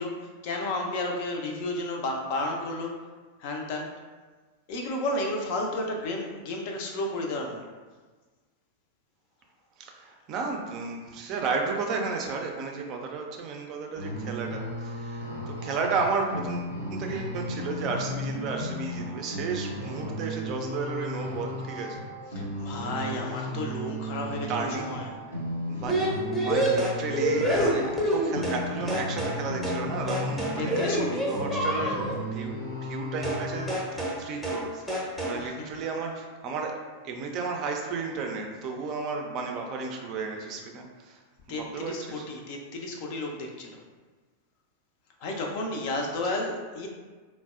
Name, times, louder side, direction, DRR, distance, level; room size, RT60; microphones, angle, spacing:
voice 1, 0.0-3.0 3.4-4.0 4.7-7.7 22.3-25.1 30.6-31.3 35.3-35.7 41.5-43.8 45.2-46.9, left 2 dB, 45° left, 1 dB, 0.5 m, -32 dB
voice 2, 9.8-22.0 22.4-22.5 23.1-23.2 24.5-24.9 25.7-30.8 31.1-36.7 37.0-41.2 41.5-42.2, right 4 dB, 35° right, 2 dB, 0.4 m, -33 dB
sound 1, 13.9-33.7, left 1 dB, 80° left, 0.9 m, -35 dB
sound 2, 25.9-28.6 28.9-29.4 29.6-29.8 30.1-32.2 33.2-33.4 33.7-34.2 34.4-34.6 34.9-35.4, right 1 dB, 5° left, 0.7 m, -27 dB
3.9 x 2.1 x 2.3 m, 1.4 s
figure-of-eight pair, 90°, 0 cm